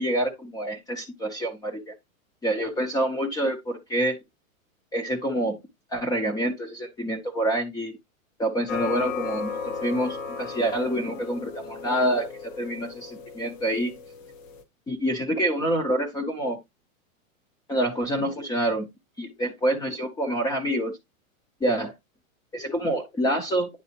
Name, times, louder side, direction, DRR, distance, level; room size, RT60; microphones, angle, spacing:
voice 1, 0.0-1.9 2.4-4.2 4.9-5.6 5.9-8.0 8.4-14.0 14.9-16.6 17.7-18.9 19.2-21.0 21.6-21.9 22.5-23.7, right 1 dB, 10° left, 0.6 m, -27 dB
sound 1, 8.7-14.6, left 6 dB, 65° left, 1.3 m, -36 dB
9.6 x 3.9 x 2.8 m
supercardioid pair, 155°, 42 cm